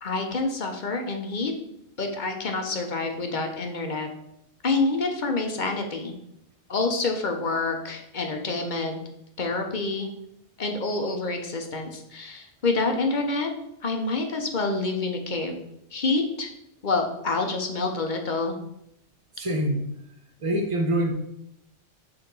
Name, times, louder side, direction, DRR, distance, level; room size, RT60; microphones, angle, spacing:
voice 1, 0.0-1.5 2.0-4.1 4.6-6.1 6.7-9.0 9.4-10.1 10.6-13.5 13.8-15.6 15.9-16.5 16.8-18.6, left 3 dB, 45° left, 4 dB, 1.0 m, -27 dB
voice 2, 19.4-19.9 20.4-21.1, right 1 dB, 30° right, 4 dB, 0.9 m, -25 dB
6.9 x 3.6 x 5.3 m, 0.79 s
omnidirectional pair, 1.2 m